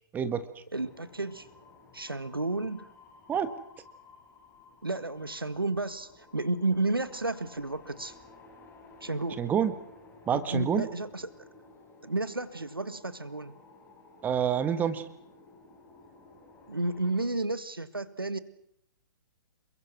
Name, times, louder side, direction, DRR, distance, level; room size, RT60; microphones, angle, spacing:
voice 1, 0.1-0.6 3.3-3.5 9.4-9.7 10.3-10.9 14.2-15.0, right 8 dB, 15° right, 12 dB, 1.6 m, -27 dB
sound 1, 0.7-17.2, left 3 dB, 15° left, 6.4 m, -55 dB
voice 2, 0.7-1.5 1.9-2.9 4.8-8.2 9.0-9.4 10.3-11.3 12.0-13.6 16.7-18.4, right 2 dB, 85° right, 13 dB, 1.8 m, -32 dB
28.5 x 23.0 x 6.2 m, 0.73 s
figure-of-eight pair, 120°, 12 cm